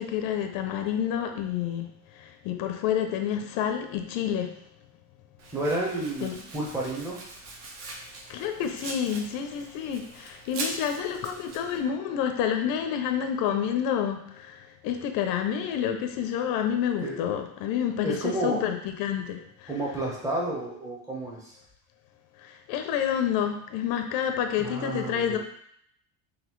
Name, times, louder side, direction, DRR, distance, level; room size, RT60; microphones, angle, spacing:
voice 1, 0.0-4.6 6.2-6.4 8.3-19.7 22.4-25.4, left 9 dB, 55° left, 6 dB, 0.6 m, -29 dB
Domestic sounds home sounds, 5.4-11.8, right 2 dB, 40° right, 0.8 m, -41 dB
voice 2, 5.5-7.2 17.0-17.2 18.0-18.6 19.7-21.5 24.6-25.4, right 2 dB, 10° right, -4 dB, 0.8 m, -31 dB
4.0 x 3.2 x 3.1 m, 0.69 s
cardioid pair, 155°, 40 cm